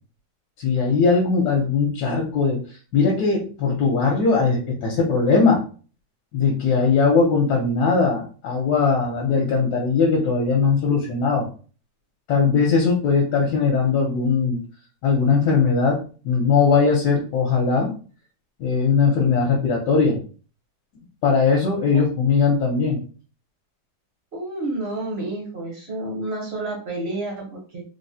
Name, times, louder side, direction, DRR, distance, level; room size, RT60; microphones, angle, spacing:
voice 1, 0.6-5.6 6.3-11.5 12.3-14.6 15.0-17.9 18.6-20.2 21.2-23.0, left 5 dB, 70° left, -1 dB, 1.1 m, -20 dB
voice 2, 24.3-27.8, right 2 dB, 55° right, -1 dB, 0.7 m, -30 dB
3.5 x 2.0 x 2.6 m, 0.39 s
omnidirectional pair, 1.8 m